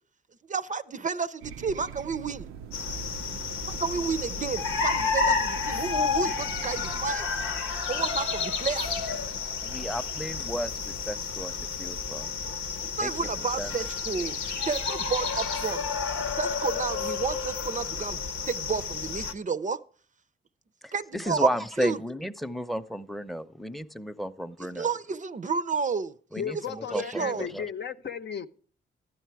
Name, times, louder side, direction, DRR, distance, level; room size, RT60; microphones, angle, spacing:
voice 1, 0.5-2.5 3.7-7.3 7.9-9.0 12.9-15.8 16.4-18.2 18.5-19.8 20.9-21.5 21.8-22.0 24.6-26.2 26.7-27.5, right 5 dB, 35° right, 0.5 m, -31 dB
sound 1, 1.4-7.1, right 7 dB, 85° right, 0.5 m, -42 dB
sound 2, 2.7-19.3, left 5 dB, 85° left, 0.9 m, -31 dB
voice 2, 9.6-12.3 13.0-13.1 13.6-13.7 20.8-24.9 26.3-27.7, equal, ahead, 0.7 m, -33 dB
voice 3, 26.4-28.5, left 8 dB, 55° left, 0.7 m, -35 dB
12.5 x 9.3 x 4.6 m
supercardioid pair, 50°, 21 cm